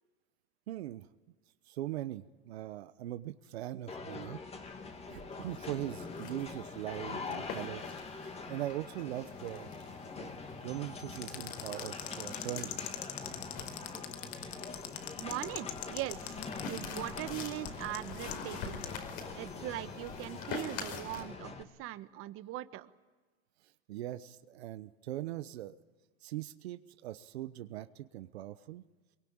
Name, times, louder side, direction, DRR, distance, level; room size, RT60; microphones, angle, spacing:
voice 1, 0.7-1.1 1.7-4.4 5.1-7.8 8.5-9.7 10.2-10.3 10.6-12.7 23.9-25.8 26.2-28.8, right 14 dB, 85° right, 11 dB, 1.0 m, -40 dB
sound 1, 3.9-21.6, left 4 dB, 20° left, 2.2 m, -44 dB
sound 2, 4.6-21.2, left 5 dB, 65° left, 5.2 m, -47 dB
sound 3, 11.1-18.9, left 12 dB, 85° left, 2.0 m, -42 dB
voice 2, 15.2-18.8 19.3-22.9, right 15 dB, 45° right, 12 dB, 1.3 m, -41 dB
24.0 x 23.0 x 8.9 m, 1.3 s
supercardioid pair, 120°, 31 cm